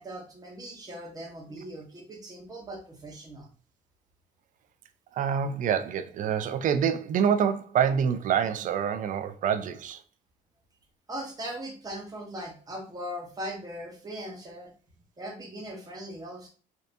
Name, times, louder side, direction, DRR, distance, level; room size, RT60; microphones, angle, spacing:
voice 1, 0.0-3.5 11.1-14.7 15.2-16.5, equal, 20° right, 1.0 m, -39 dB
voice 2, 5.1-10.0, right 8 dB, 50° right, 0.4 m, -26 dB
3.4 x 2.7 x 2.6 m
cardioid pair, 110°, 17 cm